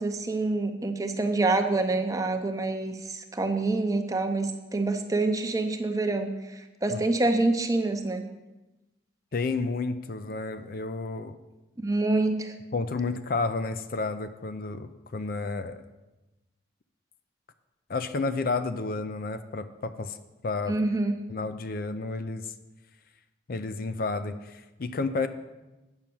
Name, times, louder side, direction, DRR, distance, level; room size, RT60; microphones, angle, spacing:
voice 1, 0.0-8.3 11.8-12.5 20.7-21.2, right 2 dB, 15° right, 6 dB, 0.6 m, -27 dB
voice 2, 9.3-11.4 12.7-15.8 17.9-20.2 20.4-20.8 21.3-22.5 23.5-25.3, left 3 dB, 50° left, 10 dB, 0.4 m, -31 dB
8.9 x 6.0 x 6.9 m, 1.1 s
head